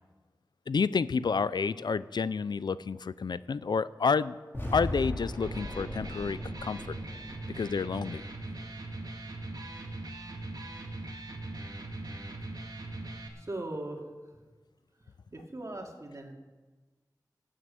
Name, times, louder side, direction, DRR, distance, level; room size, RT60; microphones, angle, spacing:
voice 1, 0.7-4.4 4.7-7.0 7.6-8.2, left 5 dB, 80° left, 17 dB, 0.4 m, -29 dB
sound 1, 4.5-8.7, left 1 dB, 30° left, 3.8 m, -39 dB
Electric guitar, 5.3-13.3, right 2 dB, 65° right, 2.0 m, -40 dB
voice 2, 13.4-14.0 15.3-16.3, right 2 dB, 45° right, 1 dB, 2.5 m, -39 dB
16.0 x 7.7 x 8.3 m, 1.3 s
wide cardioid pair, 50°, 7 cm